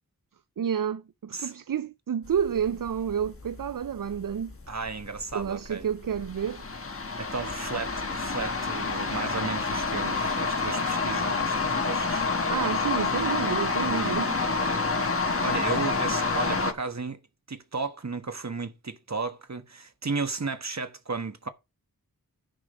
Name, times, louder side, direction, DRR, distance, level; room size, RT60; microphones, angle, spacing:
voice 1, 0.6-4.5 5.3-6.6 12.5-14.4, right 8 dB, 65° right, 0.5 m, -30 dB
sound 1, 2.2-16.7, left 4 dB, 40° left, 1.3 m, -29 dB
voice 2, 4.7-5.8 7.2-12.5 13.9-14.2 15.4-17.2 17.5-21.5, right 4 dB, 50° right, 1.4 m, -34 dB
10.5 x 4.9 x 5.2 m
wide cardioid pair, 70°, 36 cm